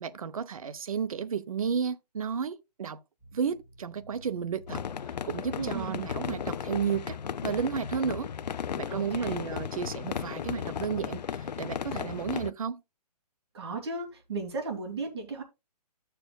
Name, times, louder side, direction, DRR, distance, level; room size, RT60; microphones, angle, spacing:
voice 1, 0.0-3.0 3.3-4.8 5.2-7.2 7.4-8.3 8.8-12.8, right 7 dB, 55° right, 0.7 m, -32 dB
sound 1, 3.2-10.2, right 1 dB, 5° right, 5.6 m, -52 dB
sound 2, 4.7-12.5, left 8 dB, 80° left, 0.5 m, -35 dB
voice 2, 5.6-6.1 8.9-9.5 13.5-15.4, right 3 dB, 40° right, 2.4 m, -36 dB
13.5 x 6.9 x 2.2 m
hypercardioid pair, 170°, 21 cm